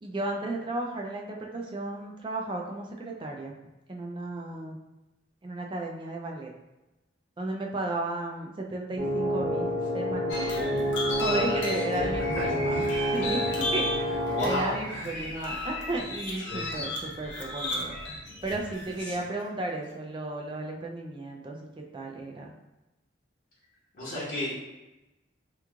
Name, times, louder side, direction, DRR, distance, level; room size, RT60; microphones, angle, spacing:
voice 1, 0.0-3.5 3.9-4.8 5.4-6.5 7.4-10.9 11.2-18.0 18.4-22.5, right 2 dB, 25° right, 0 dB, 0.3 m, -34 dB
sound 1, 9.0-14.6, equal, 60° right, 0.7 m, -28 dB
sound 2, 10.3-19.2, left 1 dB, 65° left, 0.7 m, -35 dB
voice 2, 11.9-12.9 14.3-15.1 16.5-16.7 19.1-19.2 23.9-24.6, left 1 dB, 45° left, -10 dB, 1.1 m, -34 dB
3.0 x 2.4 x 3.5 m, 1.0 s
head